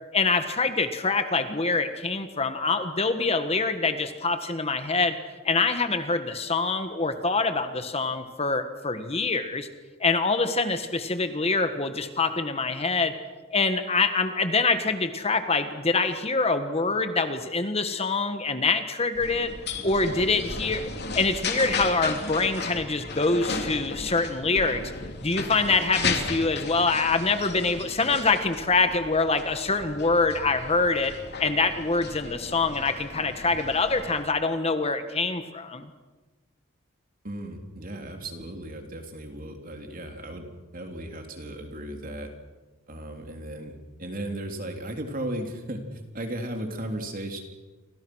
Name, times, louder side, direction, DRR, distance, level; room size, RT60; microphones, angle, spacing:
voice 1, 0.1-5.1 5.4-9.7 10.0-13.1 13.5-19.5 19.8-20.8 21.1-24.9 25.2-31.1 31.4-35.9, left 3 dB, 30° left, 8 dB, 1.5 m, -25 dB
sound 1, 19.1-34.2, left 4 dB, 50° left, 3.3 m, -35 dB
voice 2, 37.2-40.5 40.7-42.3 42.9-47.4, right 1 dB, 40° right, 4 dB, 3.6 m, -36 dB
30.0 x 25.0 x 6.4 m, 1.3 s
head